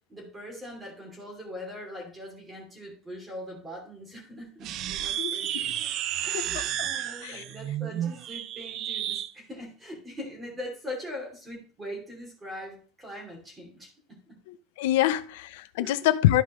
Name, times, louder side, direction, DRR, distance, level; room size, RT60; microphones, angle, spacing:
voice 1, 0.1-5.7 6.3-14.4 15.8-16.1, left 1 dB, 10° right, 2.7 m, -41 dB
sound 1, 4.6-9.3, right 11 dB, 35° right, 0.4 m, -32 dB
voice 2, 5.2-5.7 6.3-6.6 7.2-7.4 14.8-16.4, left 14 dB, 80° left, 0.5 m, -25 dB
12.5 x 5.0 x 3.0 m
cardioid pair, 170°, 0 cm